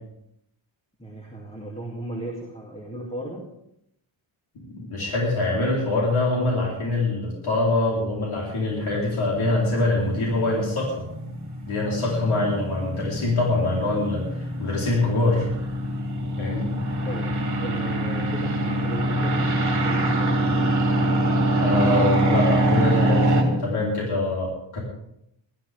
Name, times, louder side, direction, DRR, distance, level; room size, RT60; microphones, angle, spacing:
voice 1, 1.0-3.5 17.0-17.3 17.6-20.5, right 1 dB, 10° left, -1 dB, 2.7 m, -36 dB
voice 2, 4.5-11.1 11.7-15.5 16.4-16.7 21.6-24.8, left 2 dB, 80° left, -4 dB, 4.2 m, -24 dB
sound 1, 8.8-23.4, right 1 dB, 35° right, 3.2 m, -24 dB
21.0 x 13.5 x 3.6 m, 0.76 s
wide cardioid pair, 115°, 49 cm